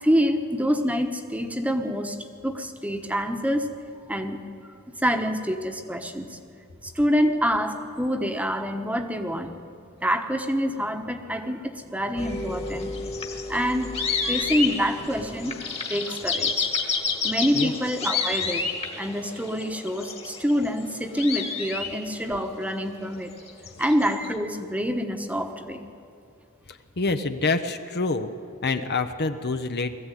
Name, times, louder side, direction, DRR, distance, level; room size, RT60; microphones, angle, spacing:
voice 1, 0.0-2.2 2.4-3.7 4.1-4.4 5.0-6.4 6.8-9.5 10.0-13.2 13.5-15.5 15.9-16.7 17.2-18.7 19.0-23.3 23.8-25.9, equal, 5° right, 6 dB, 1.2 m, -26 dB
sound 1, 12.2-22.5 23.4-24.3, left 4 dB, 30° left, 1.9 m, -30 dB
voice 2, 26.7-28.3 28.6-29.9, left 3 dB, 50° left, 9 dB, 0.9 m, -27 dB
21.0 x 14.5 x 9.2 m, 2.5 s
head